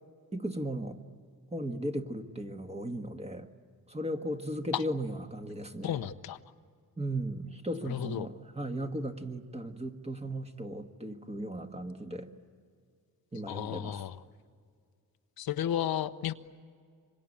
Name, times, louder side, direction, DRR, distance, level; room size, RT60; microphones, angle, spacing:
voice 1, 0.3-1.0 1.5-3.5 3.9-6.0 7.0-12.3 13.3-14.0, right 1 dB, 15° right, 5 dB, 1.7 m, -36 dB
voice 2, 5.8-6.4 7.9-8.3 13.5-14.2 15.4-16.3, left 11 dB, 85° left, 10 dB, 0.9 m, -33 dB
26.5 x 24.0 x 8.6 m, 2.1 s
cardioid pair, 100°, 35 cm